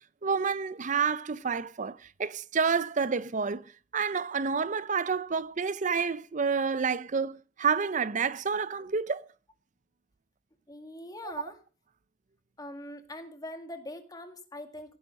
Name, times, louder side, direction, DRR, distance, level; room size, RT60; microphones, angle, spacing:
voice 1, 0.2-3.6 3.9-9.3, right 5 dB, 45° right, 0.6 m, -29 dB
voice 2, 10.7-11.6 12.6-15.0, left 1 dB, 20° left, 2.1 m, -42 dB
16.5 x 10.0 x 5.3 m
head